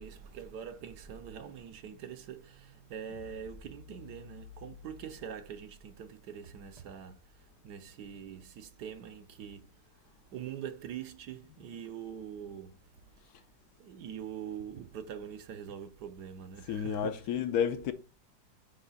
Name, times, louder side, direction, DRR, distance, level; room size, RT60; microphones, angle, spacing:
voice 1, 0.0-9.8 10.3-12.8 13.8-17.2, right 8 dB, 65° right, 1.3 m, -44 dB
sound 1, 3.1-6.5, left 7 dB, 85° left, 1.4 m, -53 dB
voice 2, 16.7-17.9, left 8 dB, 65° left, 1.1 m, -31 dB
9.6 x 3.2 x 4.0 m
omnidirectional pair, 2.0 m